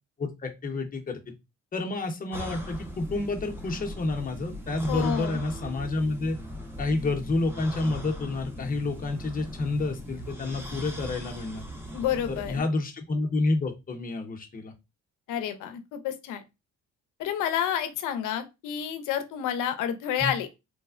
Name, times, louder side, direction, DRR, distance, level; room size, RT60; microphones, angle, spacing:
voice 1, 0.2-1.3 1.7-6.4 6.8-11.6 12.3-14.7 20.2-20.3, left 2 dB, 30° left, 0.7 m, -29 dB
sound 1, 2.3-12.6, equal, 10° right, 0.7 m, -39 dB
voice 2, 4.9-5.4 11.9-12.6 15.3-16.4 17.2-20.5, left 9 dB, 90° left, 0.6 m, -29 dB
3.2 x 2.1 x 2.3 m
cardioid pair, 90°, 30 cm